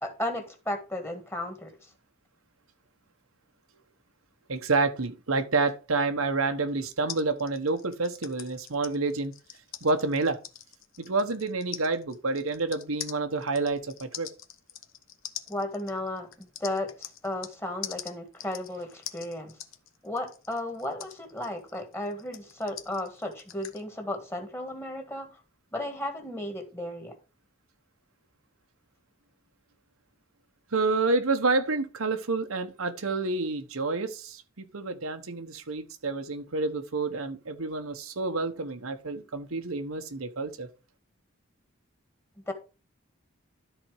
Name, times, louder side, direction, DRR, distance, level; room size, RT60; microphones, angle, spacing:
voice 1, 0.0-1.9 15.5-19.6 20.0-25.3 25.7-27.1 42.5-42.6, left 1 dB, 10° left, 1.6 m, -34 dB
voice 2, 4.5-9.3 9.8-10.4 11.0-14.3 30.7-40.7, right 3 dB, 90° right, 1.1 m, -29 dB
sound 1, 7.1-17.6 17.8-23.8, left 10 dB, 75° left, 1.0 m, -43 dB
12.5 x 4.3 x 4.8 m
head